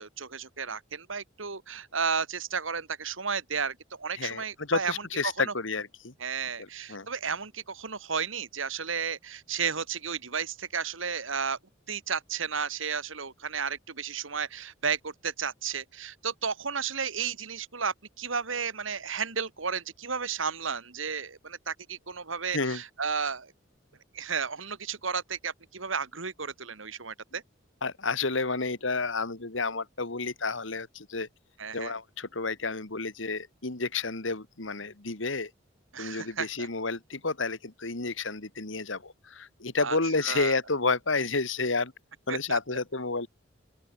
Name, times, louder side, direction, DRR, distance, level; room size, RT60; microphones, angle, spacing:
voice 1, 0.0-4.9 5.2-5.3 6.2-11.6 11.9-23.5 24.1-27.4 31.6-31.9 35.9-36.7 39.8-40.0 40.2-40.6 42.3-42.6, right 6 dB, 85° right, 2.3 m, -33 dB
voice 2, 4.1-6.1 6.6-7.1 22.5-22.8 27.8-31.3 31.7-35.5 36.0-41.9 42.3-43.3, left 3 dB, 75° left, 2.2 m, -30 dB
open air
head